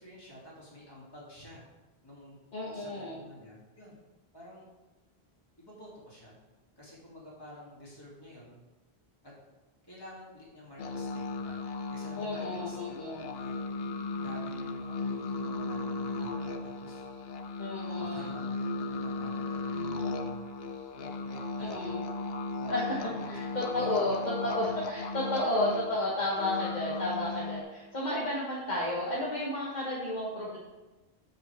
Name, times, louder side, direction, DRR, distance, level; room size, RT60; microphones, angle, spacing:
voice 1, 0.0-1.6 2.0-2.4 2.7-4.0 4.3-4.7 5.6-6.3 6.8-8.6 9.2-9.3 9.9-11.6 11.9-13.6 14.2-17.0 18.0-20.4 20.9-21.7 22.5-22.7 23.1-24.3 24.6-24.8, equal, 25° left, -6 dB, 2.5 m, -49 dB
voice 2, 2.5-3.2 12.2-13.2 17.6-18.3 21.6-22.0 22.7-23.0 23.3-30.6, left 1 dB, 45° left, -6 dB, 1.4 m, -32 dB
sound 1, 10.8-27.6, left 3 dB, 70° left, 0.9 m, -36 dB
7.9 x 7.3 x 3.5 m, 1.1 s
omnidirectional pair, 1.1 m